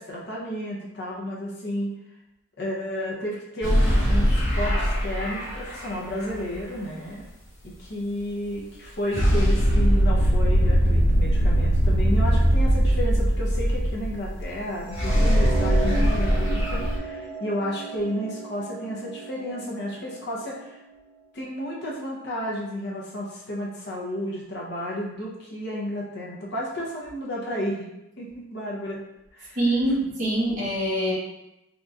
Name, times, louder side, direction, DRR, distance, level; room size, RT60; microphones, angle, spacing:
voice 1, 0.0-1.9 2.6-7.2 7.6-20.8 21.3-27.9 28.2-29.0 29.3-29.6, equal, 55° left, -4 dB, 0.8 m, -32 dB
sound 1, 3.6-6.6 9.1-14.5 14.7-17.0, equal, 75° left, 1.2 m, -21 dB
sound 2, 14.8-21.0, right 4 dB, 70° right, 0.6 m, -35 dB
voice 2, 29.5-31.1, right 1 dB, 40° right, -8 dB, 1.3 m, -24 dB
3.8 x 2.9 x 2.4 m, 0.90 s
head